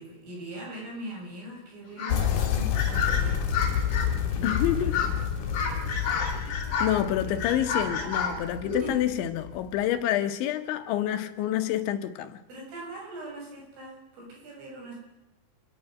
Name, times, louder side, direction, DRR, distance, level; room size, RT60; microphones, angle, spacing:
voice 1, 0.0-3.7 4.3-7.7 8.8-8.9 12.5-15.0, right 1 dB, 85° right, -2 dB, 9.7 m, -42 dB
sound 1, 2.0-2.2 2.7-4.1 4.4-4.7 4.9-5.1 5.5-7.0 7.4-8.9, left 6 dB, 35° left, 4.1 m, -30 dB
sound 2, 2.1-9.8, left 8 dB, 60° left, 3.4 m, -29 dB
voice 2, 4.4-5.0 6.2-12.4, left 12 dB, 75° left, 9 dB, 3.2 m, -28 dB
28.0 x 10.5 x 9.5 m, 0.93 s
omnidirectional pair, 5.6 m